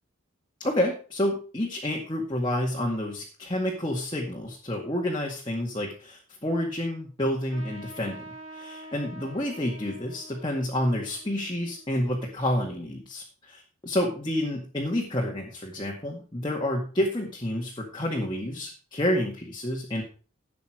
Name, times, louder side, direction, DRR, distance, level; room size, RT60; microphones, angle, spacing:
voice 1, 0.6-8.2 8.5-20.0, left 1 dB, 25° left, -1 dB, 2.0 m, -29 dB
Trumpet, 7.5-12.5, right 1 dB, 75° right, 6.1 m, -46 dB
12.5 x 8.4 x 4.9 m, 0.38 s
head